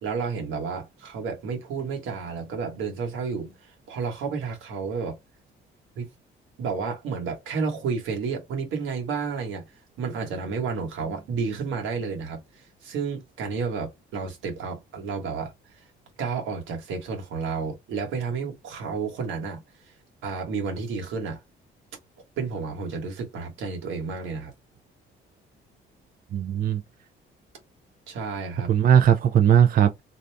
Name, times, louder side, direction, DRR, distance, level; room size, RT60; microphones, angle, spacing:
voice 1, 0.0-5.2 6.0-6.1 6.6-9.6 10.0-12.4 12.8-15.5 16.2-19.6 20.2-21.4 22.4-24.5 28.1-28.7, right 5 dB, 90° right, 1.2 m, -31 dB
voice 2, 26.3-26.8 28.7-30.0, right 9 dB, 50° right, 0.4 m, -18 dB
2.6 x 2.3 x 3.2 m
cardioid pair, 90°, 20 cm